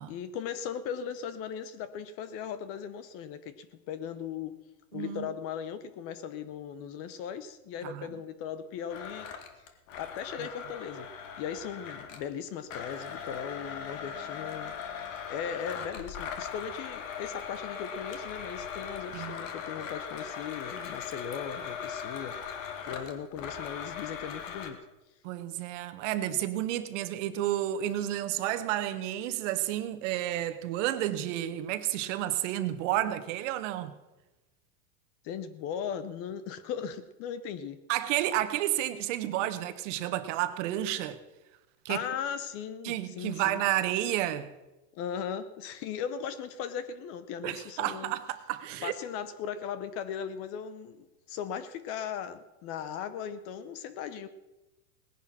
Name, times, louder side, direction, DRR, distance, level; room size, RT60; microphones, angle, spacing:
voice 1, 0.0-4.6 4.9-9.3 10.0-11.1 11.4-14.7 15.3-22.4 22.8-24.8 35.2-37.8 41.9-43.6 44.9-48.1 48.8-54.3, left 8 dB, 30° left, 0.7 m, -38 dB
voice 2, 4.9-5.3 7.8-8.1 19.1-19.4 25.2-33.9 37.9-41.2 41.8-42.0 42.8-44.5 47.4-48.9, right 13 dB, 50° right, 1.3 m, -31 dB
Domestic sounds home sounds, 8.9-12.3 12.7-24.7, left 7 dB, 55° left, 2.1 m, -39 dB
18.5 x 10.0 x 6.0 m
supercardioid pair, 140°, 48 cm